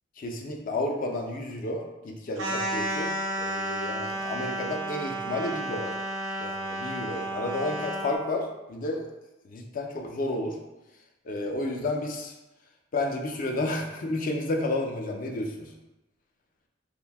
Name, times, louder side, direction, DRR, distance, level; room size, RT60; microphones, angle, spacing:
voice 1, 0.2-5.9 6.4-9.0 9.5-10.6 11.3-12.3 12.9-15.7, left 2 dB, 45° left, 1 dB, 0.4 m, -31 dB
sound 1, 2.4-8.2, right 1 dB, 80° right, 0.6 m, -32 dB
2.5 x 2.1 x 3.3 m, 1.0 s
head